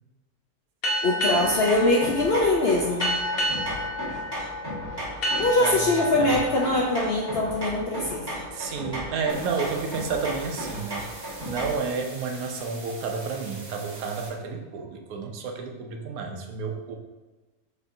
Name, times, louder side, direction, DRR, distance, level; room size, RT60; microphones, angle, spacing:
sound 1, 0.8-8.1, equal, 45° left, 0.9 m, -31 dB
voice 1, 1.0-3.1 5.4-8.5, left 2 dB, 65° left, -2 dB, 0.6 m, -23 dB
sound 2, 1.3-11.9, right 1 dB, 15° right, 1.1 m, -35 dB
voice 2, 5.6-5.9 6.2-6.4 8.5-11.1 11.4-17.0, right 5 dB, 80° right, 3 dB, 1.1 m, -31 dB
sound 3, 9.3-14.3, right 2 dB, 50° right, 1.1 m, -44 dB
6.3 x 2.8 x 2.6 m, 1.2 s
omnidirectional pair, 1.5 m